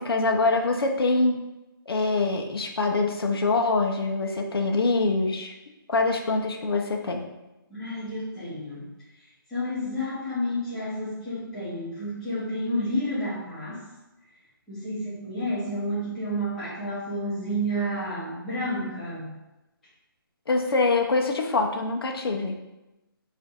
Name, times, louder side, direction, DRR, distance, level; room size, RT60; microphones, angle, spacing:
voice 1, 0.0-1.4 1.9-5.5 5.9-7.3 20.5-22.6, left 3 dB, 85° left, 2 dB, 0.5 m, -24 dB
voice 2, 7.7-8.9 9.5-13.9 14.7-19.3, equal, ahead, -15 dB, 0.5 m, -30 dB
2.5 x 2.5 x 3.9 m, 1.0 s
hypercardioid pair, 170°, 12 cm